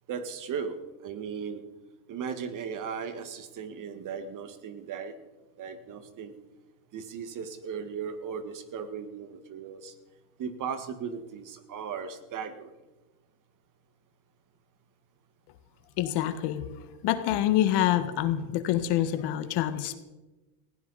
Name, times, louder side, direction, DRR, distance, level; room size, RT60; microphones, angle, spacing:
voice 1, 0.1-0.8 1.0-1.6 2.1-5.1 5.6-6.4 6.9-9.9 10.4-12.7, right 6 dB, 45° right, 10 dB, 1.8 m, -37 dB
voice 2, 16.0-16.7 17.0-20.0, left 12 dB, 65° left, 10 dB, 1.7 m, -26 dB
19.0 x 16.5 x 4.2 m, 1.1 s
supercardioid pair, 120°, 44 cm